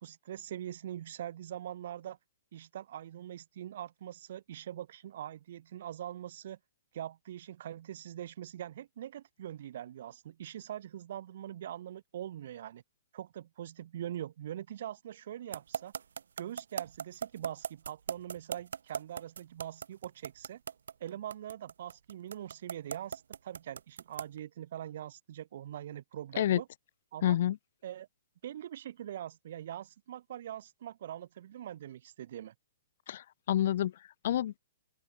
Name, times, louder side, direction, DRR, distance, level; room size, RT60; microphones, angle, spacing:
voice 1, 0.0-2.2 2.5-6.6 6.9-12.8 13.1-15.9 16.4-20.6 21.0-26.7 27.1-27.4 27.8-28.1 28.4-32.5, right 11 dB, 45° right, 3.5 m, -43 dB
sound 1, 15.5-24.4, right 7 dB, 80° right, 1.2 m, -38 dB
voice 2, 27.2-27.6 33.1-34.6, left 11 dB, 45° left, 1.0 m, -29 dB
open air
hypercardioid pair, 175°, 0 cm